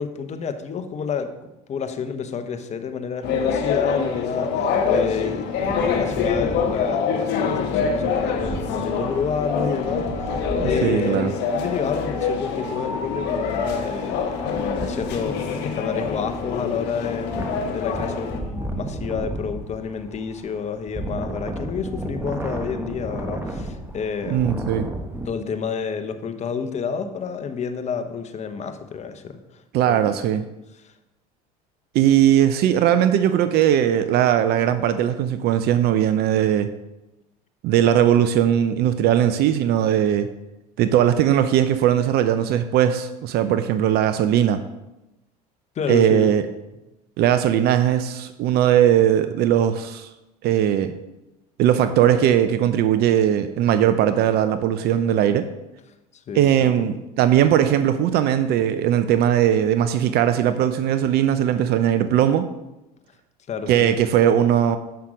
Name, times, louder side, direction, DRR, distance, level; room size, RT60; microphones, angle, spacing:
voice 1, 0.0-1.3 1.7-5.4 5.7-24.5 25.2-29.6 29.9-30.2 30.8-30.9 45.7-46.3 56.1-56.7 63.5-63.9, left 6 dB, 35° left, 8 dB, 1.0 m, -29 dB
sound 1, 3.2-18.4, left 5 dB, 60° left, 1.2 m, -25 dB
Wind, 5.5-11.0 12.0-25.3, right 1 dB, 10° right, 1.2 m, -34 dB
voice 2, 10.6-11.3 24.3-24.9 29.7-30.4 31.9-36.7 37.6-40.3 40.8-44.6 45.9-46.4 47.2-50.1 50.4-50.9 51.6-55.5 56.3-62.5 63.7-64.8, right 10 dB, 55° right, 11 dB, 0.5 m, -19 dB
7.6 x 5.7 x 5.0 m, 0.97 s
supercardioid pair, 90°, 19 cm